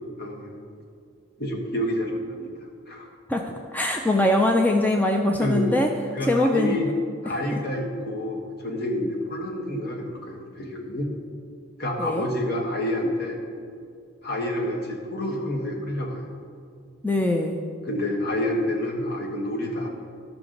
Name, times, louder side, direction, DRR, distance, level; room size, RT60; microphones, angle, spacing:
voice 1, 0.2-0.5 1.4-2.5 2.9-3.1 5.4-5.7 6.1-6.9 7.2-11.1 11.8-13.4 14.2-16.2 17.8-19.9, left 1 dB, 55° left, 0 dB, 1.3 m, -28 dB
voice 2, 3.3-5.9 6.2-6.8 7.5-7.6 12.0-12.3 17.0-17.6, left 1 dB, 10° left, 2 dB, 0.4 m, -22 dB
13.0 x 5.9 x 3.8 m, 2.3 s
head